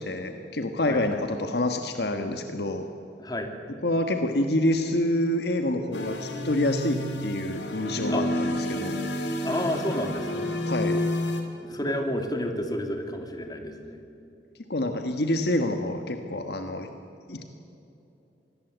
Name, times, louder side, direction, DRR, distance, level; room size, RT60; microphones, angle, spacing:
voice 1, 0.0-2.8 3.8-9.0 10.7-11.0 14.7-16.9 17.3-17.4, left 1 dB, 65° left, 6 dB, 1.5 m, -27 dB
voice 2, 3.2-3.5 8.1-8.2 9.4-10.6 11.6-14.0, left 1 dB, 25° left, 5 dB, 2.8 m, -30 dB
sound 1, 5.9-11.4, left 1 dB, 80° left, 3.2 m, -30 dB
26.0 x 20.0 x 8.1 m, 2.8 s
head